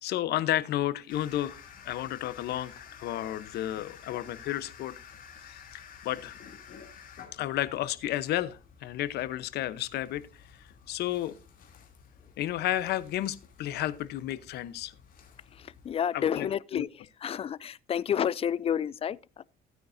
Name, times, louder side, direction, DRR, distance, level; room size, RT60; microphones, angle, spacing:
voice 1, 0.0-4.9 5.5-6.3 7.3-10.2 10.6-11.3 12.4-14.9 16.1-16.9, left 13 dB, 75° left, 0.9 m, -32 dB
sound 1, 1.1-15.9, left 7 dB, 55° left, 2.9 m, -52 dB
voice 2, 15.5-16.9 17.2-19.4, left 9 dB, 35° left, 0.4 m, -30 dB
15.5 x 9.3 x 2.6 m
cardioid pair, 110°, 17 cm